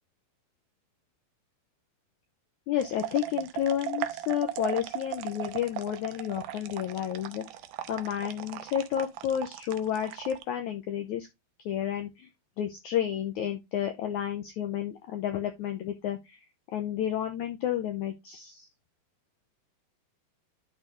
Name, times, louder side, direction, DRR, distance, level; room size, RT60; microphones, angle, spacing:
voice 1, 2.7-7.5 7.9-11.3 11.7-12.3 12.6-16.4 16.7-18.7, left 10 dB, 80° left, 5 dB, 1.7 m, -31 dB
sound 1, 2.8-10.4, right 13 dB, 80° right, 2.4 m, -37 dB
12.0 x 4.3 x 3.1 m, 0.21 s
omnidirectional pair, 4.4 m